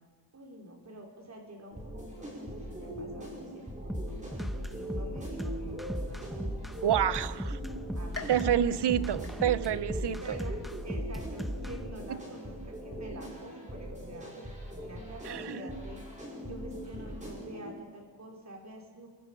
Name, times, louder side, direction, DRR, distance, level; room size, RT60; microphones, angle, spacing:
voice 1, 0.3-6.2 6.8-7.1 7.9-8.5 10.2-10.5 10.8-14.3 14.8-16.0 16.4-19.1, right 1 dB, 35° right, 0 dB, 4.5 m, -47 dB
sound 1, 1.7-17.7, equal, 15° right, 5.9 m, -41 dB
sound 2, 3.9-11.8, equal, ahead, 0.8 m, -36 dB
voice 2, 6.8-7.3 8.3-10.4 12.1-12.2 15.2-15.6, right 10 dB, 65° right, 17 dB, 0.8 m, -28 dB
sound 3, 8.1-9.9 10.3-10.9 11.4-11.5 12.5-12.6, left 3 dB, 30° left, 2.9 m, -46 dB
28.5 x 23.0 x 5.3 m, 1.4 s
wide cardioid pair, 170°, 45 cm